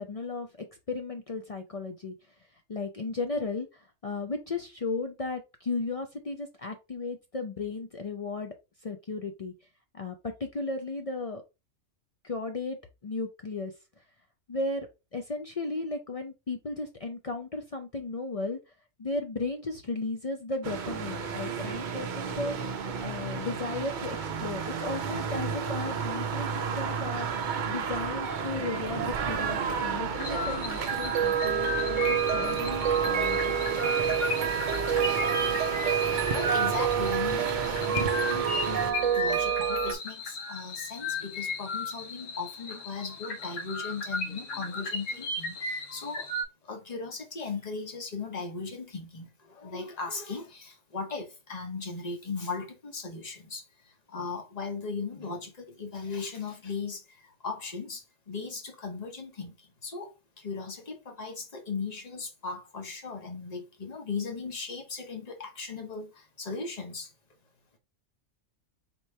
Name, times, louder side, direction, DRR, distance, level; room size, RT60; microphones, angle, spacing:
voice 1, 0.0-2.1 2.7-8.5 8.8-9.5 9.9-11.4 12.2-12.8 13.0-13.7 14.5-18.6 19.0-26.5 26.7-27.3 27.7-33.5, left 3 dB, 50° left, 0.4 m, -35 dB
sound 1, 20.6-38.9, right 6 dB, 50° right, 0.6 m, -33 dB
sound 2, 28.9-39.9, right 8 dB, 75° right, 1.0 m, -28 dB
sound 3, 30.2-46.4, left 3 dB, 75° left, 1.5 m, -35 dB
voice 2, 36.1-46.3 46.6-53.6 54.1-59.6 59.8-67.1, left 4 dB, 35° left, 1.0 m, -37 dB
4.4 x 3.0 x 3.3 m
omnidirectional pair, 1.3 m